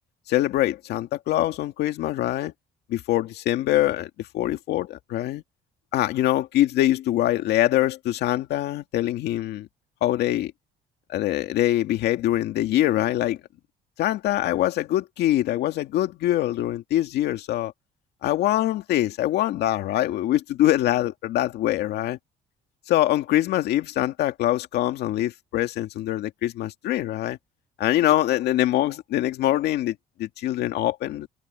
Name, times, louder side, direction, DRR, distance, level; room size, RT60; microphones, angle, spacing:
voice 1, 0.3-2.5 2.9-5.4 5.9-9.7 10.0-10.5 11.1-13.4 14.0-17.7 18.2-22.2 22.9-27.4 27.8-31.3, left 14 dB, 75° left, 2.2 m, -24 dB
cardioid pair, 110°, 17 cm